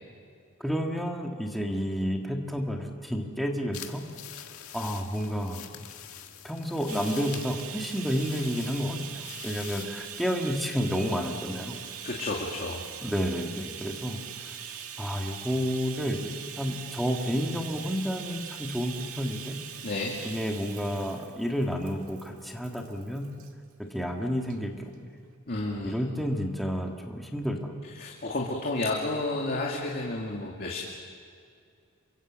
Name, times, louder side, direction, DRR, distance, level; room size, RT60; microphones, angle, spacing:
voice 1, 0.6-4.0 4.7-5.6 6.4-11.7 13.0-14.5 15.0-19.6 20.2-23.3 23.8-25.2 25.8-27.8, equal, ahead, 1 dB, 2.0 m, -30 dB
sound 1, 3.7-9.9, left 10 dB, 80° left, 1.8 m, -45 dB
Bathtub (filling or washing), 6.9-23.5 24.4-24.6 24.9-25.0, right 8 dB, 85° right, 1.9 m, -42 dB
voice 2, 12.0-12.8 19.8-20.2 25.5-25.9 27.9-30.8, left 2 dB, 45° left, -2 dB, 2.6 m, -31 dB
28.0 x 24.5 x 7.6 m, 2.2 s
head